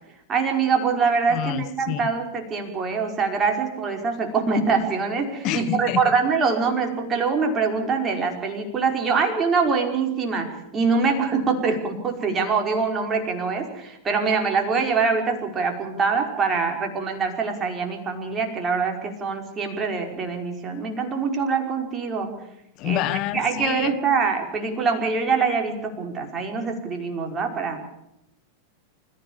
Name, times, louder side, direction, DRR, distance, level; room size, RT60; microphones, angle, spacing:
voice 1, 0.3-22.4 22.8-23.0 23.3-27.8, right 5 dB, 20° right, 3 dB, 5.3 m, -24 dB
voice 2, 1.3-2.1 5.4-6.1 22.8-24.0, left 13 dB, 40° left, 12 dB, 1.5 m, -28 dB
28.5 x 16.0 x 7.2 m, 0.86 s
figure-of-eight pair, 90°, 0 cm